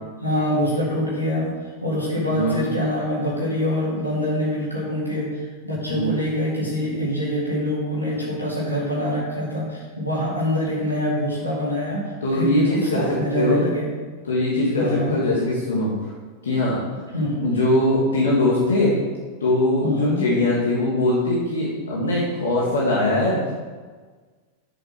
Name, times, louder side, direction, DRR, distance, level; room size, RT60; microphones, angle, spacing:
voice 1, 0.2-1.5 1.8-13.9 14.8-15.2 17.1-17.4 19.8-20.2, left 1 dB, 90° left, -6 dB, 3.4 m, -25 dB
voice 2, 2.3-2.6 5.9-6.1 12.2-13.7 14.2-15.9 16.4-16.8 17.4-18.9 19.4-23.5, left 1 dB, 70° left, -6 dB, 2.7 m, -21 dB
8.2 x 7.2 x 6.7 m, 1.4 s
figure-of-eight pair, 90°, 0 cm